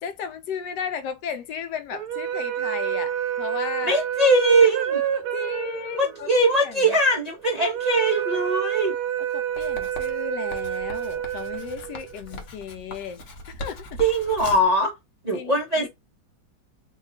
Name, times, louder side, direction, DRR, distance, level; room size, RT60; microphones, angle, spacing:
voice 1, 0.0-4.0 5.3-6.3 6.6-6.9 9.3-14.0 15.3-15.9, left 7 dB, 75° left, 1.1 m, -35 dB
sound 1, 1.9-12.3, right 10 dB, 70° right, 1.0 m, -29 dB
voice 2, 3.8-5.0 6.0-8.9 14.0-14.9 15.2-15.9, right 1 dB, 35° right, 0.6 m, -21 dB
Writing, 9.6-14.8, left 1 dB, 55° left, 0.9 m, -40 dB
2.7 x 2.6 x 4.0 m
omnidirectional pair, 2.0 m